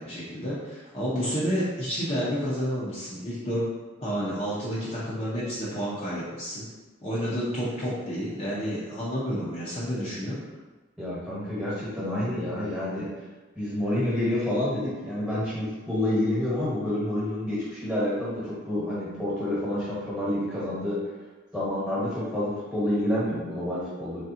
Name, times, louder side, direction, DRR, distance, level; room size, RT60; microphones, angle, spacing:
voice 1, 0.0-3.6 4.0-6.7 7.0-10.4, equal, 30° left, -9 dB, 0.7 m, -30 dB
voice 2, 11.0-13.1 13.5-21.0 21.5-24.2, left 1 dB, 5° right, -9 dB, 1.2 m, -28 dB
3.7 x 3.2 x 2.8 m, 1.2 s
head